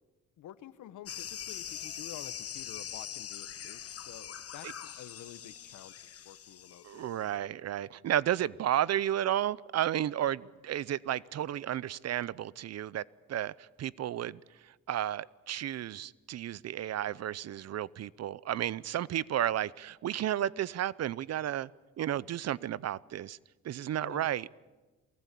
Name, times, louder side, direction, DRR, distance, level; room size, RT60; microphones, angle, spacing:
voice 1, 0.4-6.0 6.2-7.0 24.0-24.3, left 11 dB, 75° left, 14 dB, 1.3 m, -49 dB
sound 1, 1.1-7.2, left 9 dB, 50° left, 1.3 m, -43 dB
voice 2, 6.8-13.0 13.3-14.4 14.9-21.7 22.0-23.4 23.6-24.5, right 11 dB, 60° right, 22 dB, 0.7 m, -32 dB
23.5 x 19.5 x 8.4 m, 1.2 s
cardioid pair, 90°, 30 cm